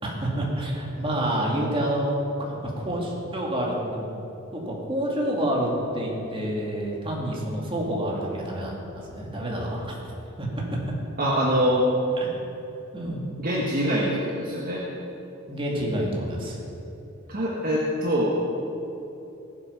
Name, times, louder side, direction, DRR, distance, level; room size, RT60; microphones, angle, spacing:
voice 1, 0.0-4.1 4.5-10.0 10.4-10.8 12.2-12.3 12.9-13.3 15.5-16.6, right 1 dB, 25° right, -3 dB, 2.6 m, -28 dB
voice 2, 11.2-11.9 13.4-14.8 17.3-18.4, equal, 45° right, -4 dB, 1.4 m, -24 dB
19.0 x 7.4 x 5.8 m, 2.9 s
head